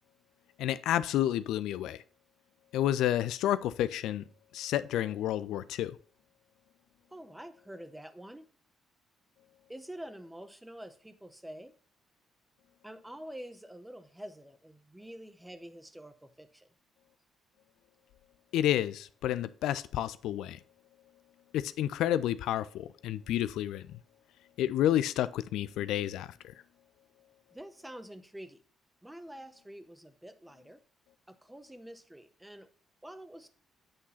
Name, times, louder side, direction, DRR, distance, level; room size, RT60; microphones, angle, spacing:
voice 1, 0.6-2.0 2.7-4.2 4.5-6.0 18.5-20.6 21.5-24.0 24.6-26.5, left 12 dB, 80° left, 0.3 m, -30 dB
voice 2, 7.1-8.5 9.7-11.7 12.8-16.7 27.5-28.6 29.0-30.8 31.3-32.7 33.0-33.5, right 1 dB, 10° right, 1.0 m, -47 dB
8.6 x 3.8 x 5.6 m
supercardioid pair, 55°, 0 cm